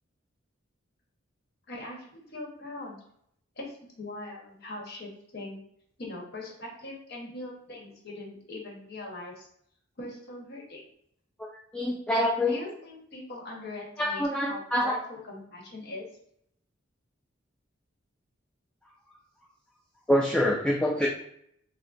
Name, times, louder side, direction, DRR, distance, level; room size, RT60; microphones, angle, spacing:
voice 1, 1.7-3.0 3.6-5.6 6.0-9.5 10.0-10.8 12.4-16.1, left 2 dB, 60° left, -2 dB, 1.2 m, -41 dB
voice 2, 11.7-12.6 14.0-15.0 20.1-21.1, left 1 dB, 5° left, -1 dB, 0.3 m, -25 dB
6.4 x 2.1 x 2.5 m, 0.71 s
head